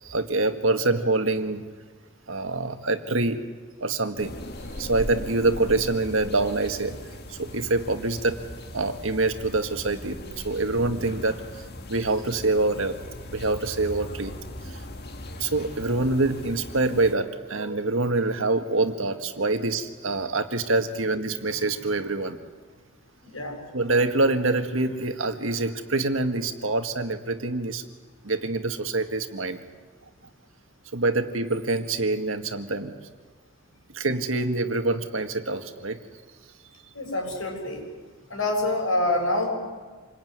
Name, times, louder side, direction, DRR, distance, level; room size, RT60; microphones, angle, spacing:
voice 1, 0.0-1.6 2.3-3.4 3.8-4.4 4.8-7.0 7.3-8.4 8.7-13.0 13.3-14.3 14.6-14.8 15.4-22.4 23.7-27.9 28.2-29.6 30.9-33.0 33.9-36.0, right 2 dB, 70° right, 6 dB, 1.9 m, -25 dB
sound 1, 4.2-17.1, left 1 dB, 50° left, 1.8 m, -39 dB
voice 2, 23.2-23.6 36.9-37.9 38.3-39.5, left 2 dB, 75° left, 2 dB, 7.5 m, -26 dB
27.5 x 21.5 x 9.6 m, 1.4 s
head